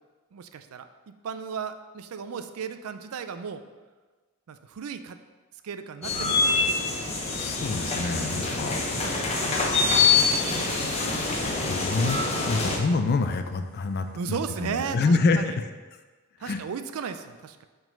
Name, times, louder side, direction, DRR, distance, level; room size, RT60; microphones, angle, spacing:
voice 1, 0.3-3.6 4.5-5.2 5.6-7.2 7.9-9.5 14.2-15.5 16.4-17.7, right 6 dB, 75° right, 10 dB, 0.4 m, -36 dB
sound 1, 6.0-12.8, left 4 dB, 30° left, 0.8 m, -25 dB
voice 2, 7.3-8.8 10.6-11.3 11.7-12.2 12.4-15.6 16.4-16.6, left 3 dB, 45° left, 8 dB, 0.4 m, -27 dB
sound 2, 12.7-14.9, equal, 25° right, 1.7 m, -51 dB
4.9 x 3.9 x 5.1 m, 1.3 s
head